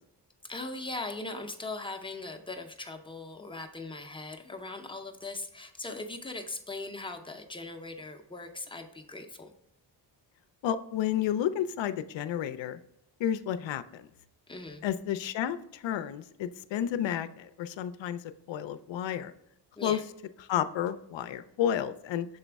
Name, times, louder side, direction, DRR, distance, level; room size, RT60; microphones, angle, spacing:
voice 1, 0.4-9.5 14.5-14.8 19.8-20.0, left 2 dB, 10° left, 4 dB, 0.5 m, -40 dB
voice 2, 10.6-12.8 13.2-13.8 14.8-18.2 18.5-19.3 19.8-20.0 20.5-22.3, left 10 dB, 85° left, 12 dB, 0.6 m, -31 dB
6.9 x 4.1 x 3.4 m, 0.81 s
wide cardioid pair, 155°, 44 cm